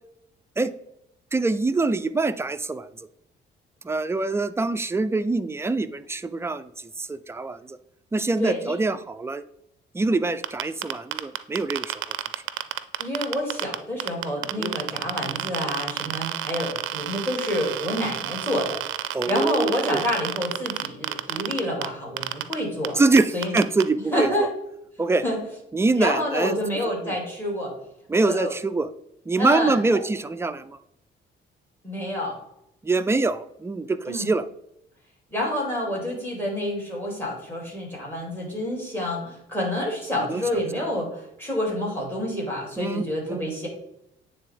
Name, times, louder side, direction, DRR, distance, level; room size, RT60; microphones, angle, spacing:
voice 1, 1.3-2.9 3.8-7.8 8.1-9.4 9.9-11.9 14.6-14.9 19.1-20.0 23.0-24.5 25.0-25.2 25.7-26.6 27.0-27.1 28.1-28.9 29.3-30.8 32.8-34.4 40.3-40.4 42.8-43.5, right 3 dB, 15° right, 11 dB, 0.3 m, -24 dB
voice 2, 8.4-8.7 13.0-18.8 19.2-23.0 23.3-23.6 24.1-24.5 25.2-25.4 26.0-27.7 28.2-28.5 29.4-30.0 31.8-32.4 34.1-34.3 35.3-43.7, left 1 dB, 10° left, -1 dB, 2.6 m, -28 dB
sound 1, 10.4-13.8 14.0-21.9 22.2-22.5 22.8-22.9 23.2-23.8, right 15 dB, 85° right, 0.4 m, -29 dB
8.9 x 3.5 x 3.4 m, 0.78 s
cardioid pair, 90°, 20 cm